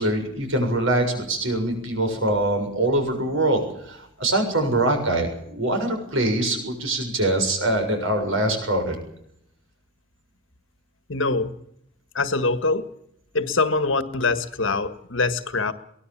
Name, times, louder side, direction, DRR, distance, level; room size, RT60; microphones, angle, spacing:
voice 1, 0.0-9.0, right 1 dB, 65° right, 5 dB, 7.1 m, -23 dB
voice 2, 11.1-11.5 12.1-12.9 13.3-15.7, left 3 dB, 65° left, 11 dB, 1.7 m, -23 dB
23.5 x 18.5 x 7.4 m, 0.73 s
head